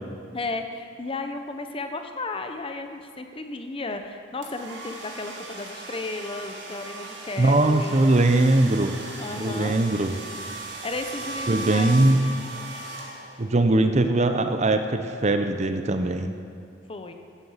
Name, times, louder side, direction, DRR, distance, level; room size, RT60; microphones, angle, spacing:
voice 1, 0.3-8.1 9.2-9.8 10.8-12.0 16.9-17.1, left 2 dB, 30° left, 6 dB, 0.7 m, -34 dB
sound 1, 4.4-13.6, right 2 dB, 65° right, 2.2 m, -37 dB
voice 2, 7.4-8.9 9.4-10.1 11.5-12.2 13.4-16.3, right 2 dB, 35° right, 7 dB, 0.7 m, -21 dB
13.0 x 11.5 x 5.7 m, 2.4 s
head